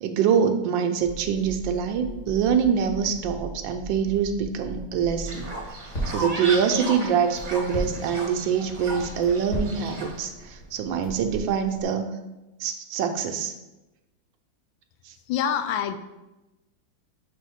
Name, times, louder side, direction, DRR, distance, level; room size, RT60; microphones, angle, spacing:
voice 1, 0.0-5.5 6.1-12.1 12.6-13.5 15.1-15.2, right 7 dB, 75° right, 7 dB, 1.3 m, -25 dB
Crackle, 1.0-11.8, right 1 dB, 55° left, 2.9 m, -38 dB
Fowl, 5.2-10.2, right 2 dB, 35° right, 0.9 m, -35 dB
voice 2, 15.3-16.0, left 9 dB, 80° left, 9 dB, 1.3 m, -25 dB
7.1 x 3.4 x 5.6 m, 1.0 s
omnidirectional pair, 2.2 m